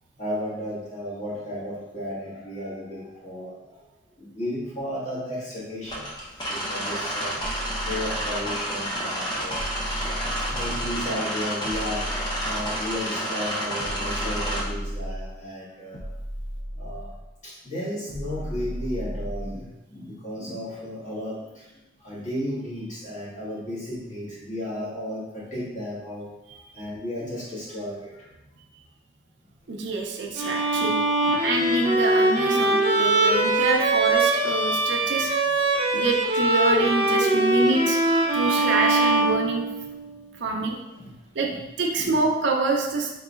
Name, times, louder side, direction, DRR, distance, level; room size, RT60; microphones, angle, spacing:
voice 1, 0.2-3.8 4.2-6.1 6.5-7.4 7.9-9.6 10.4-12.1 12.4-16.1 16.7-17.1 17.4-21.7 22.0-26.3 26.7-28.3 30.7-30.9 31.2-31.5 35.9-36.0 40.0-40.1 40.4-40.7 40.9-41.6 42.0-42.2, equal, 40° left, -8 dB, 1.5 m, -34 dB
sound 1, 5.8-14.6, equal, 25° left, 0.8 m, -30 dB
sound 2, 7.4-8.7 9.5-11.1 11.6-13.1 13.8-15.4 15.9-17.3 18.1-19.7, equal, 80° left, 0.9 m, -35 dB
voice 2, 29.7-31.0 31.4-35.3 35.9-39.6 40.4-40.8 41.3-41.5 41.8-43.1, right 3 dB, 65° right, 1 dB, 0.5 m, -26 dB
Bowed string instrument, 30.4-40.1, right 2 dB, 30° right, 0.6 m, -22 dB
4.0 x 3.8 x 2.4 m, 1.0 s
head